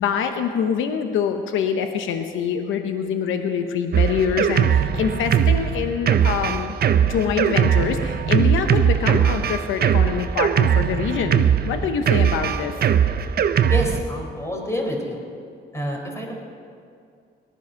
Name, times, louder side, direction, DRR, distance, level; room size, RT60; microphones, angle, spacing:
voice 1, 0.0-6.7 7.0-12.7, left 7 dB, 85° left, 7 dB, 0.9 m, -25 dB
Drum kit, 3.9-14.0, right 8 dB, 50° right, 0.7 m, -20 dB
voice 2, 13.7-15.2 15.7-16.3, left 1 dB, 15° left, 0 dB, 4.1 m, -27 dB
18.5 x 12.0 x 5.7 m, 2.3 s
cardioid pair, 90°, 20 cm